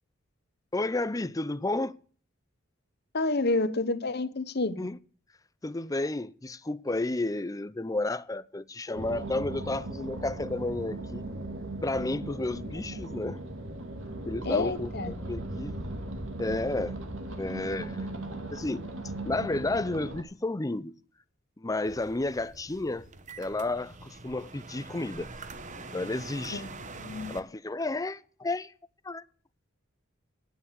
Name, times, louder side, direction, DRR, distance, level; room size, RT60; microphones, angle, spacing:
voice 1, 0.7-1.9 4.8-5.0 5.6-11.3 11.8-13.4 14.3-15.7 16.4-17.0 17.4-18.1 18.5-18.8 19.2-20.9 21.6-23.1 23.4-25.3 25.9-26.6 27.3-28.7 29.0-29.2, left 2 dB, 15° left, 0.5 m, -32 dB
voice 2, 3.1-4.9 14.4-15.1 26.5-26.7 27.0-27.4, left 2 dB, 55° left, 1.0 m, -29 dB
sound 1, 8.9-20.2, right 2 dB, 75° right, 2.2 m, -38 dB
sound 2, 21.8-27.4, right 3 dB, 40° right, 1.0 m, -44 dB
10.5 x 9.4 x 6.4 m
head